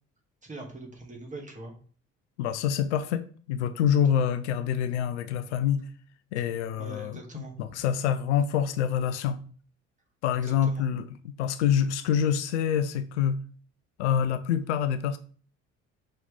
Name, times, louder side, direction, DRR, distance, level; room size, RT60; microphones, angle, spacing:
voice 1, 0.4-1.7 6.8-7.8 10.4-10.9, right 2 dB, 20° right, 2.3 m, -42 dB
voice 2, 2.4-5.8 6.3-9.4 10.2-11.0 11.4-13.4 14.0-15.2, left 8 dB, 70° left, 0.6 m, -26 dB
6.3 x 4.7 x 3.5 m
figure-of-eight pair, 50°, 36 cm